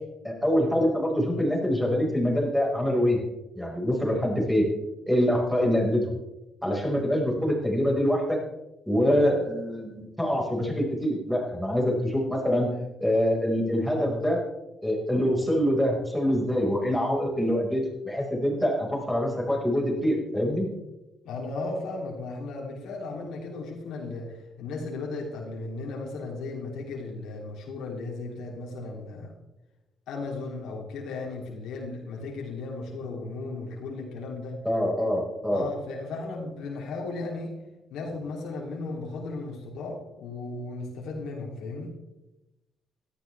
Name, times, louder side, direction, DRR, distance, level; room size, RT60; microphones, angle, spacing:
voice 1, 0.2-3.2 3.5-4.7 5.1-6.1 6.6-8.4 8.9-12.7 13.0-14.4 14.8-20.7 34.6-35.6, equal, ahead, -2 dB, 5.1 m, -25 dB
voice 2, 21.2-29.3 30.1-34.6 35.5-37.6 37.9-41.9, left 3 dB, 85° left, -1 dB, 3.0 m, -35 dB
17.0 x 13.0 x 3.4 m, 0.99 s
cardioid pair, 90°, 0 cm